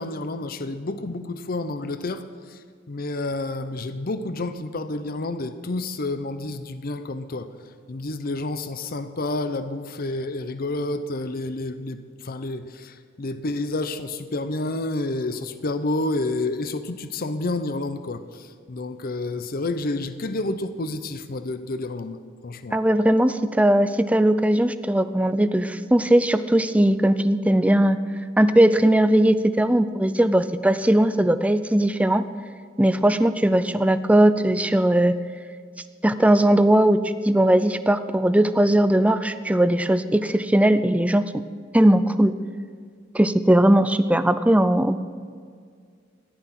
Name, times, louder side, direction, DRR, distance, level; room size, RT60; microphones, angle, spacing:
voice 1, 0.0-7.5 7.9-22.8, left 2 dB, 50° left, 10 dB, 0.7 m, -29 dB
voice 2, 22.7-28.0 28.4-32.2 32.8-35.1 36.0-37.0 37.2-41.2 41.7-42.3 43.1-45.0, right 1 dB, 5° right, 11 dB, 0.5 m, -19 dB
14.5 x 11.5 x 5.9 m, 2.1 s
head